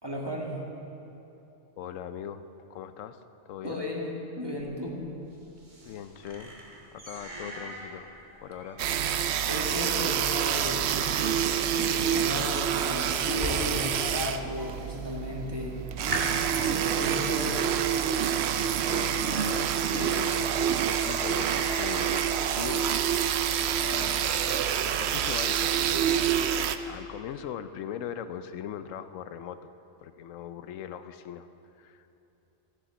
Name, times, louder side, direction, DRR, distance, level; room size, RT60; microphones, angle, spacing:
voice 1, 0.0-0.6 3.6-4.1 4.4-5.0 9.5-11.4 11.7-15.8 16.5-17.6 23.8-24.1, left 1 dB, 20° right, -2 dB, 1.8 m, -35 dB
voice 2, 1.8-2.4 2.7-3.8 5.8-6.5 6.9-8.1 8.4-8.8 18.9-22.8 25.0-26.2 26.8-29.6 30.0-31.5 31.8-32.1, left 9 dB, 85° left, 11 dB, 1.0 m, -40 dB
sound 1, 4.6-14.2 14.4-15.0 15.4-15.5 15.8-24.2, right 1 dB, 35° right, 2.0 m, -41 dB
sound 2, 8.8-26.8, right 9 dB, 65° right, 0.8 m, -27 dB
14.0 x 9.9 x 6.9 m, 2.9 s
omnidirectional pair, 1.3 m